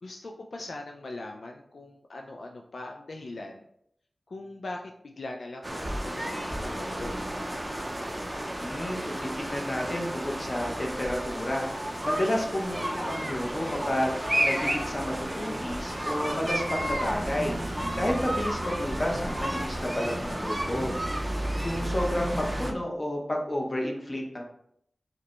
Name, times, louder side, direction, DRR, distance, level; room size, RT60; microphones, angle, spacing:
voice 1, 0.0-3.7 4.3-7.2, left 2 dB, 75° left, 2 dB, 0.3 m, -41 dB
sound 1, 5.6-22.7, right 1 dB, 15° right, 0.5 m, -32 dB
voice 2, 8.6-17.6 18.0-20.9 21.6-24.4, left 1 dB, 35° left, 0 dB, 0.8 m, -31 dB
4.9 x 2.2 x 3.0 m, 0.72 s
wide cardioid pair, 85°, 0 cm